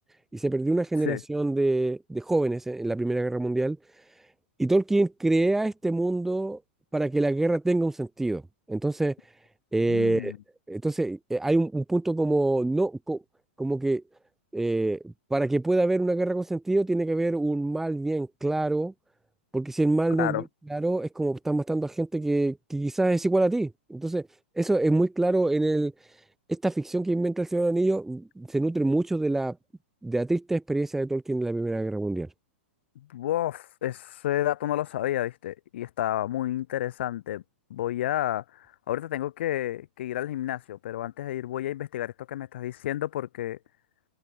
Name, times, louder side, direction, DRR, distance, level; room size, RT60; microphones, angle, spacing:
voice 1, 0.3-3.8 4.6-6.6 6.9-8.4 8.7-9.1 9.7-10.3 10.7-13.2 13.6-14.0 14.5-18.9 19.5-20.4 20.7-24.3 24.6-25.9 26.5-29.6 30.0-32.3, right 2 dB, 5° right, 4.3 m, -26 dB
voice 2, 9.8-10.4 20.2-20.4 32.9-37.4 37.7-43.6, left 13 dB, 65° left, 6.3 m, -30 dB
hypercardioid pair, 135°, 7 cm